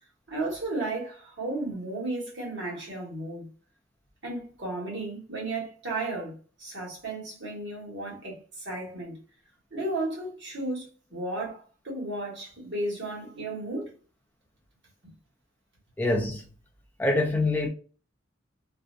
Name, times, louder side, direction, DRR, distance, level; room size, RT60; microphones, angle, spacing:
voice 1, 0.3-3.5 4.2-6.3 6.6-9.2 9.7-13.9 15.0-15.1, right 2 dB, 60° right, 1.3 m, -34 dB
voice 2, 16.0-16.4 17.0-17.7, left 2 dB, 10° left, 0.4 m, -25 dB
2.6 x 2.2 x 2.4 m
head